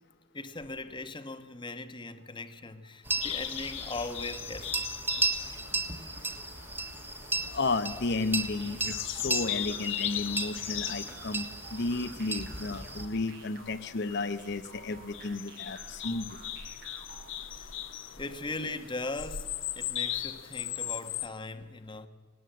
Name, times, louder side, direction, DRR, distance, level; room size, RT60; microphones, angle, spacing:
voice 1, 0.3-4.9 17.5-17.7 18.2-22.1, left 3 dB, 25° left, 1.1 m, -39 dB
sound 1, 3.0-13.1, right 3 dB, 10° right, 1.6 m, -35 dB
sound 2, 3.2-21.3, left 11 dB, 80° left, 1.3 m, -39 dB
voice 2, 7.5-16.3, left 3 dB, 60° left, 0.9 m, -33 dB
sound 3, 8.3-17.5, right 7 dB, 55° right, 2.2 m, -53 dB
19.0 x 19.0 x 7.9 m
head